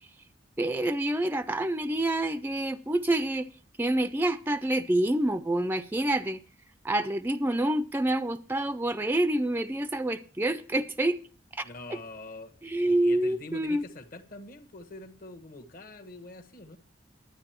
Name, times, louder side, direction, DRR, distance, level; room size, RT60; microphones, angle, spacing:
voice 1, 0.6-3.5 3.8-6.4 6.8-11.2 11.5-12.0 12.6-13.8, right 1 dB, 10° right, 0.4 m, -27 dB
voice 2, 11.6-12.5 12.9-16.8, left 2 dB, 50° left, 1.2 m, -45 dB
12.0 x 9.3 x 4.4 m
head